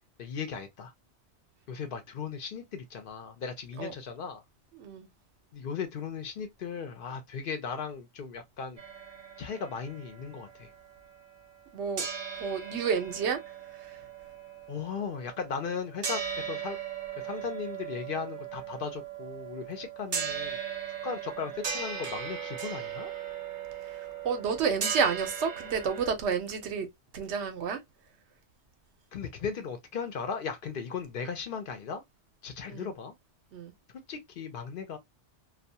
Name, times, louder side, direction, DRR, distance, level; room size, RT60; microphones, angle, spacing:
voice 1, 0.2-0.9 1.7-4.4 5.5-8.8 9.4-10.7 14.7-16.8 17.2-20.6 21.0-23.1 29.1-32.0 32.4-33.1 34.1-35.0, left 6 dB, 60° left, 0.7 m, -37 dB
voice 2, 4.7-5.1 11.7-12.0 12.4-13.4 13.8-14.0 23.8-26.9 27.1-27.8 32.7-32.9 33.5-33.7, right 6 dB, 90° right, 1.0 m, -30 dB
sound 1, 8.8-11.7 12.0-26.1, right 7 dB, 55° right, 0.7 m, -38 dB
2.3 x 2.2 x 2.6 m
omnidirectional pair, 1.1 m